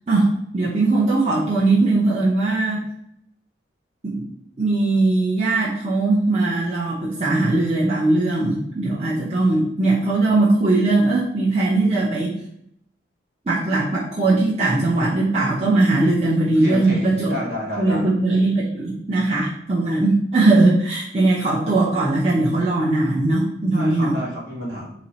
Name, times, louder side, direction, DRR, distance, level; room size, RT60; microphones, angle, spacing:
voice 1, 0.1-2.9 4.0-4.2 4.6-12.4 13.5-17.3 17.8-24.1, right 2 dB, 35° right, -7 dB, 0.7 m, -19 dB
voice 2, 16.5-18.1 23.7-24.9, equal, 60° right, -3 dB, 1.2 m, -30 dB
4.2 x 2.1 x 4.0 m, 0.71 s
head